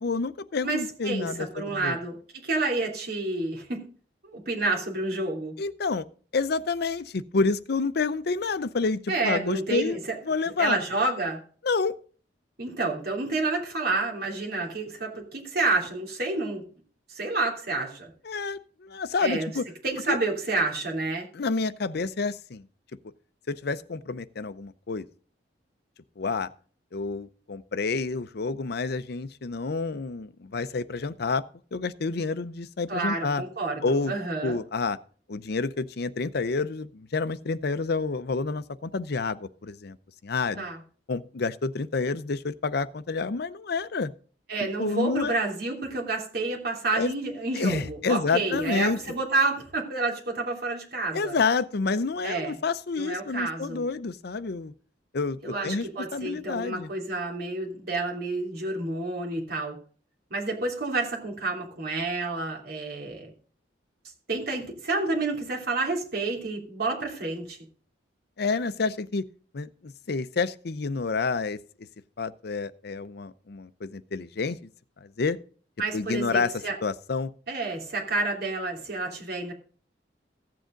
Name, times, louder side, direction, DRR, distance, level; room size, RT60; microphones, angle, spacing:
voice 1, 0.0-2.0 5.6-6.1 6.3-10.0 10.3-10.8 11.6-11.9 18.2-19.6 20.1-20.2 21.3-22.7 23.5-25.1 26.2-26.5 26.9-31.4 31.7-33.4 33.8-34.1 34.4-35.0 35.3-40.0 40.2-40.6 41.1-44.1 44.8-45.4 46.9-47.1 47.6-49.0 51.1-54.7 55.1-55.9 56.1-56.9 68.4-69.2 69.5-71.6 72.2-74.6 75.0-75.4 75.9-76.5 76.8-77.3, left 4 dB, 60° left, 0.6 m, -29 dB
voice 2, 0.6-3.8 4.2-5.5 9.1-10.2 10.6-11.4 12.6-16.6 17.1-18.1 19.2-19.5 19.8-21.3 32.9-34.6 40.6-40.8 44.5-51.4 52.2-52.6 52.9-53.8 55.4-59.8 60.3-63.3 64.3-67.6 75.8-76.7 77.5-79.5, right 3 dB, 60° right, 3.0 m, -29 dB
sound 1, 48.5-49.8, left 2 dB, 30° left, 4.0 m, -46 dB
15.0 x 7.7 x 3.8 m
head